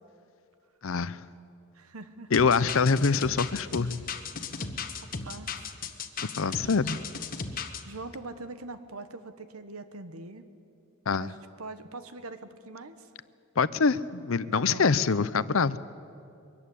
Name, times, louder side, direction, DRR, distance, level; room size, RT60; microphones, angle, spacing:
voice 1, 0.8-1.2 2.3-4.0 6.4-7.0 11.1-11.3 13.6-15.8, left 5 dB, 65° left, 17 dB, 0.6 m, -25 dB
voice 2, 1.7-2.3 4.6-4.7 5.2-5.7 6.2-6.7 7.8-10.4 11.2-13.1 14.5-15.2, right 2 dB, 80° right, 11 dB, 1.3 m, -43 dB
sound 1, 2.3-7.8, left 5 dB, 40° left, 1.2 m, -36 dB
23.0 x 14.5 x 10.0 m, 2.5 s
head